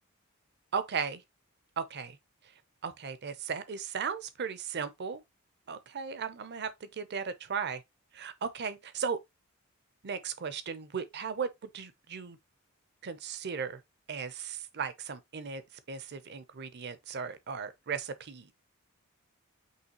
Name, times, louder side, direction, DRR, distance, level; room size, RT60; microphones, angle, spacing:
voice 1, 0.7-1.2 1.8-2.2 2.8-5.2 5.7-7.8 8.1-9.2 10.0-12.4 13.0-13.8 14.1-15.6 15.9-18.5, right 6 dB, 50° right, 0.6 m, -36 dB
5.6 x 3.1 x 2.9 m
head